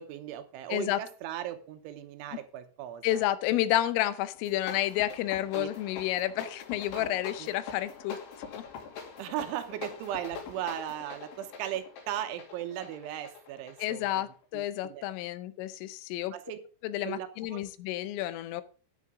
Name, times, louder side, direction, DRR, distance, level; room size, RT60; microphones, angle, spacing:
voice 1, 0.0-3.3 5.5-5.7 7.0-7.1 7.4-7.5 9.2-14.2 14.5-15.1 16.3-16.6 17.0-17.6, right 11 dB, 80° right, 3.2 m, -37 dB
voice 2, 0.7-1.0 3.0-8.2 8.5-8.7 13.8-16.4 16.8-18.6, left 14 dB, 90° left, 3.4 m, -30 dB
sound 1, 4.3-14.7, left 6 dB, 70° left, 5.0 m, -44 dB
12.5 x 9.8 x 3.7 m
omnidirectional pair, 5.7 m